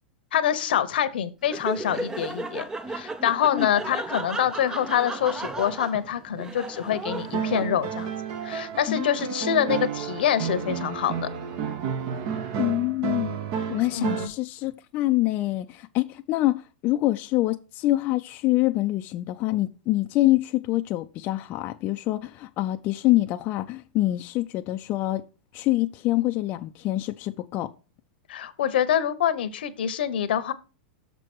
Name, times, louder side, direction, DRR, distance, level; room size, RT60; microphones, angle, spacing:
voice 1, 0.3-8.1 8.4-11.3 13.9-14.3 28.3-30.5, left 9 dB, 80° left, 1.0 m, -26 dB
Laughter, 1.4-8.0, right 2 dB, 10° right, 0.6 m, -35 dB
sound 1, 7.0-14.3, right 7 dB, 50° right, 1.3 m, -31 dB
voice 2, 12.6-13.4 13.7-25.3 25.5-27.7, left 17 dB, 35° left, 0.5 m, -25 dB
6.8 x 4.6 x 6.1 m
hypercardioid pair, 135°, 5 cm